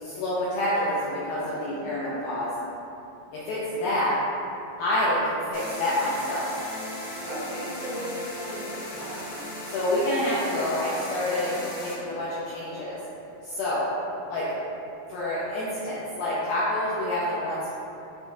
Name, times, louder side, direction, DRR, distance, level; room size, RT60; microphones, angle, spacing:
voice 1, 0.0-2.5 3.3-4.2 4.8-6.5 9.7-13.0 13.4-13.9 14.3-14.5 15.1-17.7, left 1 dB, 90° left, -8 dB, 2.0 m, -27 dB
sound 1, 5.5-11.9, left 1 dB, 75° left, 1.4 m, -37 dB
voice 2, 7.3-9.2, equal, 80° right, -12 dB, 1.7 m, -36 dB
7.2 x 2.6 x 2.3 m, 2.9 s
omnidirectional pair, 4.8 m